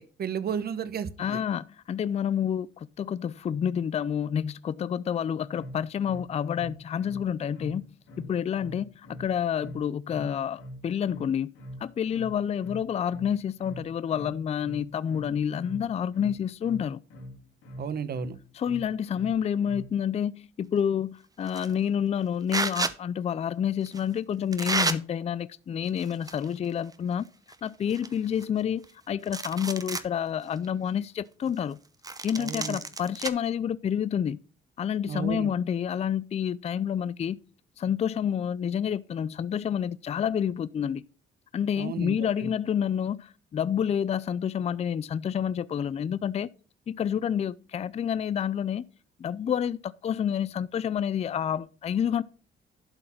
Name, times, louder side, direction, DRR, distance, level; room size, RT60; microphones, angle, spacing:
voice 1, 0.0-1.4 17.8-18.4 32.4-32.8 35.0-35.5 41.7-42.5, right 7 dB, 50° right, 0.9 m, -33 dB
voice 2, 1.2-7.9 8.2-11.5 11.8-17.0 18.6-27.3 27.6-31.8 32.2-34.4 34.8-37.4 37.8-41.0 41.5-46.5 46.9-48.8 49.2-52.2, left 8 dB, 35° left, 0.4 m, -29 dB
sound 1, 5.5-20.0, equal, 85° left, 2.0 m, -44 dB
sound 2, 21.5-21.7 22.5-22.9 23.9-24.0 24.5-25.0 25.9-26.5 26.8-26.9 27.5-27.6 27.9-28.9 29.2-30.1 30.6-30.7 32.0-33.3, right 3 dB, 20° right, 0.8 m, -31 dB
11.5 x 3.9 x 5.7 m
cardioid pair, 90°, 20 cm